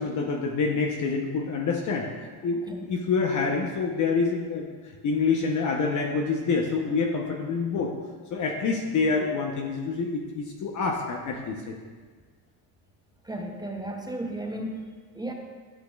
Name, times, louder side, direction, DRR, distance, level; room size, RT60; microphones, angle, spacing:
voice 1, 0.0-2.1 2.4-4.7 5.0-7.9 8.3-11.7, left 4 dB, 40° left, 1 dB, 0.8 m, -27 dB
voice 2, 13.2-14.9 15.1-15.3, right 1 dB, 10° right, 2 dB, 0.5 m, -34 dB
11.5 x 6.0 x 2.3 m, 1.5 s
supercardioid pair, 105°, 49 cm